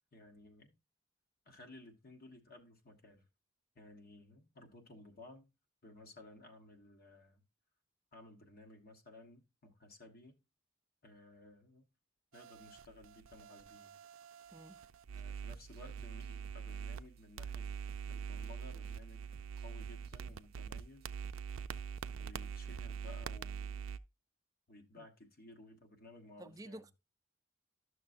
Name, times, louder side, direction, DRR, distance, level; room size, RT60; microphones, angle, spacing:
voice 1, 0.1-0.7 1.4-3.2 3.7-5.5 5.8-7.4 8.1-10.4 11.0-11.9 12.3-14.0 15.1-17.7 18.0-21.1 22.1-23.9 24.7-26.9, left 2 dB, 50° left, 1.3 m, -57 dB
sound 1, 12.3-17.0 17.4-24.0, right 7 dB, 80° right, 0.4 m, -44 dB
sound 2, 15.5-23.2, right 3 dB, 50° right, 0.7 m, -63 dB
voice 2, 26.4-26.9, right 1 dB, 20° right, 0.5 m, -50 dB
12.5 x 6.4 x 2.6 m
head